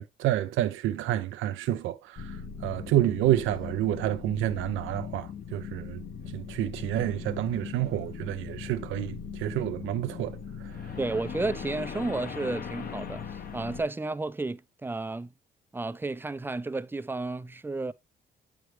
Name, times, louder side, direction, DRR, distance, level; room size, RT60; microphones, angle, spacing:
voice 1, 0.0-6.0 6.3-10.4 10.6-10.9, right 13 dB, 90° right, 0.5 m, -29 dB
sound 1, 2.2-13.8, left 6 dB, 45° left, 0.9 m, -39 dB
voice 2, 11.0-15.3 15.7-17.9, right 3 dB, 10° right, 0.4 m, -32 dB
8.1 x 4.7 x 3.2 m
cardioid pair, 90°, 20 cm